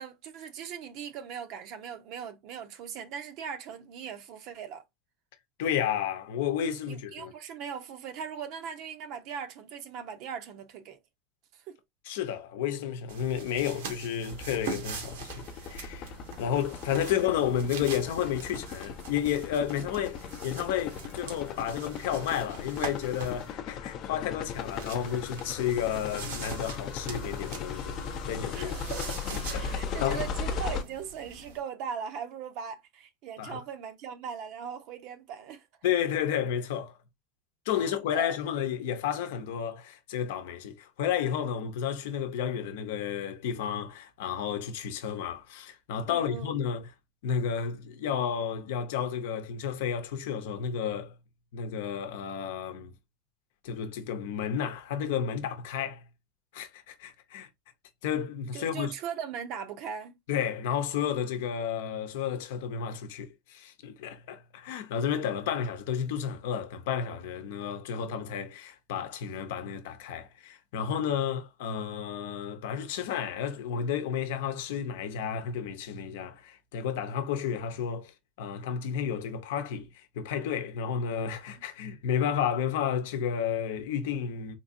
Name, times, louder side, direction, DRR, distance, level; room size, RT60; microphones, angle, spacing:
voice 1, 0.0-4.8 6.9-11.0 11.7-11.8 17.0-17.1 28.5-29.2 29.6-35.7 37.7-38.4 46.1-46.5 58.5-60.1, right 7 dB, 55° right, 0.6 m, -39 dB
voice 2, 5.6-7.3 12.0-16.1 16.4-28.7 29.5-30.2 33.4-33.6 35.8-37.0 37.7-46.9 47.2-51.1 51.5-52.9 53.6-56.0 56.5-57.5 58.0-58.9 60.3-84.6, left 8 dB, 80° left, 0.7 m, -32 dB
sound 1, 13.1-23.5 24.5-31.6, right 5 dB, 85° right, 1.1 m, -43 dB
sound 2, 14.3-30.8, left 6 dB, 45° left, 0.5 m, -38 dB
3.8 x 2.6 x 2.5 m
supercardioid pair, 125°, 0 cm